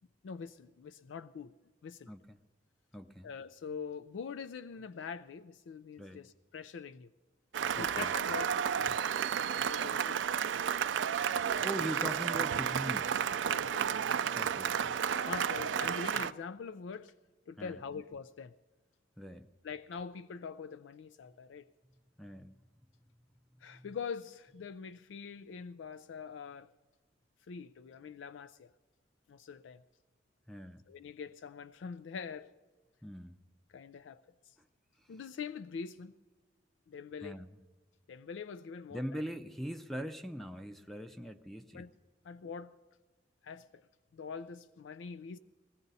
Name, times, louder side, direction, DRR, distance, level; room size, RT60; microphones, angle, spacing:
voice 1, 0.2-1.5 1.8-2.1 3.2-7.1 7.7-9.0 9.3-11.1 13.4-14.4 15.3-17.1 17.5-18.5 19.6-21.7 23.6-26.7 27.5-28.7 29.3-29.8 30.9-32.5 33.7-34.6 35.1-36.1 36.9-37.4 38.1-39.2 41.7-41.9 42.2-42.7 43.4-43.9 44.1-45.4, left 6 dB, 85° left, 0.4 m, -44 dB
voice 2, 2.1-2.4 2.9-3.3 6.0-6.2 7.8-8.1 11.5-13.1 14.3-15.0 17.6-17.8 19.2-19.5 22.2-22.5 30.5-30.8 33.0-33.4 37.2-37.6 38.9-41.8, equal, ahead, 0.5 m, -41 dB
Cheering / Applause, 7.5-16.3, right 8 dB, 80° right, 0.4 m, -32 dB
19.5 x 16.0 x 4.1 m
head